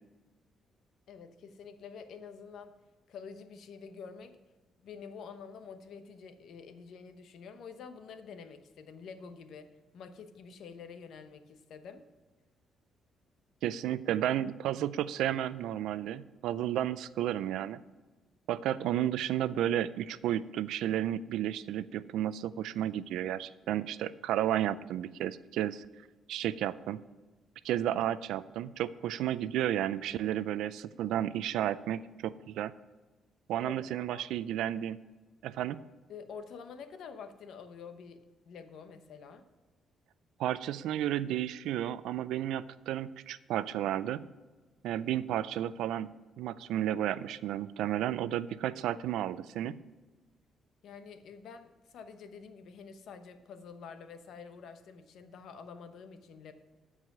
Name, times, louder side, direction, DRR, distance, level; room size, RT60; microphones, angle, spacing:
voice 1, 1.1-2.7 3.1-4.4 4.8-12.0 33.8-34.3 36.1-39.4 50.8-56.5, left 6 dB, 70° left, 9 dB, 0.9 m, -48 dB
voice 2, 13.6-17.8 18.5-25.9 26.3-27.0 27.6-32.7 33.5-35.0 35.4-35.8 40.4-44.2 44.8-46.1 46.4-49.8, right 11 dB, 85° right, 16 dB, 0.4 m, -32 dB
13.0 x 4.8 x 6.0 m, 1.3 s
cardioid pair, 90°, 0 cm